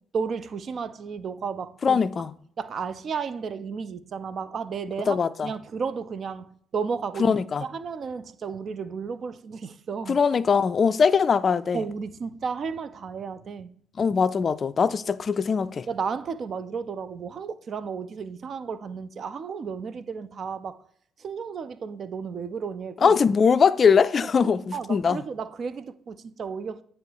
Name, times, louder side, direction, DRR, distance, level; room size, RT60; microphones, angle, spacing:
voice 1, 0.1-2.0 2.6-5.2 5.4-10.2 11.7-13.7 15.9-20.8 21.2-23.2 24.2-24.3 24.7-26.8, right 5 dB, 50° right, 0.4 m, -33 dB
voice 2, 1.8-2.3 5.1-5.5 7.2-7.7 10.1-11.8 14.0-15.9 23.0-25.2, left 6 dB, 45° left, 0.3 m, -21 dB
9.1 x 3.1 x 4.6 m
hypercardioid pair, 50°, 0 cm